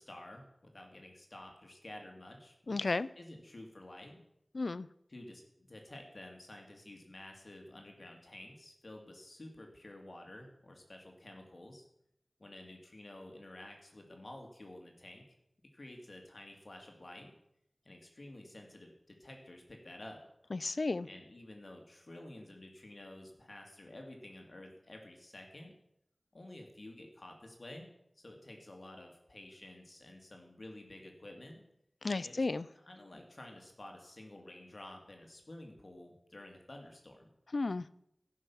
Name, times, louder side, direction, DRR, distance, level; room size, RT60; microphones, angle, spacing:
voice 1, 0.0-4.2 5.1-11.8 12.4-15.2 15.7-17.3 17.8-20.2 21.0-25.7 26.3-27.9 28.2-31.6 32.2-32.4 32.7-37.3, left 1 dB, 65° left, 2 dB, 2.2 m, -51 dB
voice 2, 2.7-3.1 4.5-4.9 20.5-21.1 32.0-32.6 37.5-37.9, left 3 dB, 90° left, 18 dB, 0.4 m, -33 dB
14.5 x 6.0 x 7.1 m, 0.76 s
wide cardioid pair, 60°, 0 cm